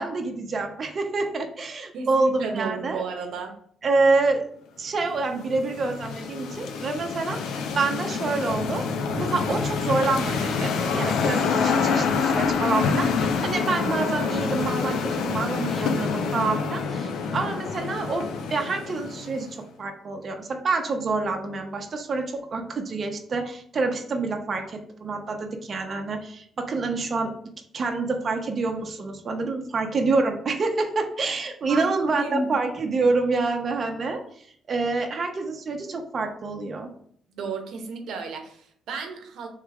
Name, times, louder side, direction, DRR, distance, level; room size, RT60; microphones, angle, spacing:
voice 1, 0.0-3.0 3.8-4.5 4.8-8.8 9.2-27.3 27.7-36.9, right 3 dB, 45° right, 4 dB, 0.7 m, -27 dB
voice 2, 1.9-3.6 31.7-32.5 37.3-39.5, right 3 dB, 75° right, 4 dB, 0.8 m, -32 dB
sound 1, 5.0-19.5, left 5 dB, 85° left, 0.4 m, -27 dB
3.3 x 3.2 x 4.7 m, 0.63 s
cardioid pair, 90°, 0 cm